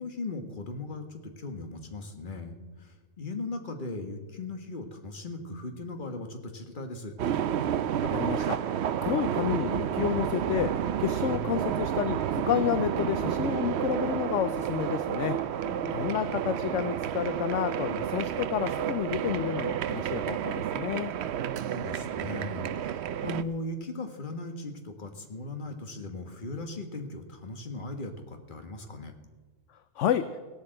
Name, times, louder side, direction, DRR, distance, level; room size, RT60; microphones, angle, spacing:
voice 1, 0.0-7.1 15.6-16.4 21.3-29.1, left 2 dB, 35° left, 5 dB, 1.6 m, -38 dB
sound 1, 7.2-23.4, right 9 dB, 65° right, 0.7 m, -30 dB
voice 2, 8.1-21.1 30.0-30.4, left 10 dB, 65° left, 11 dB, 0.9 m, -30 dB
16.5 x 8.4 x 7.6 m, 1.3 s
omnidirectional pair, 1.5 m